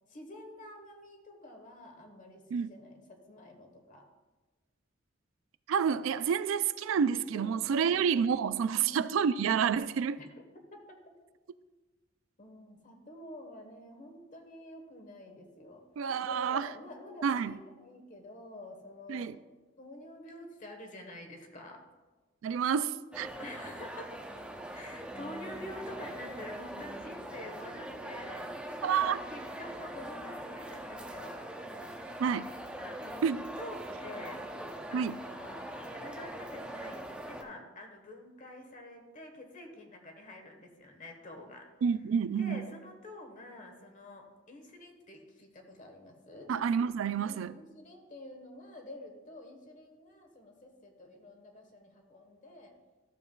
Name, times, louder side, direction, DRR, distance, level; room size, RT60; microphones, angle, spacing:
voice 1, 0.1-4.1 7.3-8.0 8.8-9.0 10.2-10.3 10.7-11.1 12.4-15.8 16.2-19.3 19.8-21.8 23.4-24.4 24.7-28.5 29.3-31.3 32.8-34.4 34.9-41.6 42.3-46.5 47.2-52.7, left 1 dB, 40° left, 1.3 m, -48 dB
voice 2, 5.7-10.2 16.0-16.7 17.2-17.6 19.1-19.4 22.4-23.3 28.8-29.2 32.2-32.5 33.2-33.4 34.9-35.2 41.8-42.6 46.5-47.5, right 7 dB, 85° right, 0.3 m, -29 dB
sound 1, 23.1-37.4, right 1 dB, 5° right, 0.7 m, -42 dB
13.5 x 7.1 x 2.3 m
head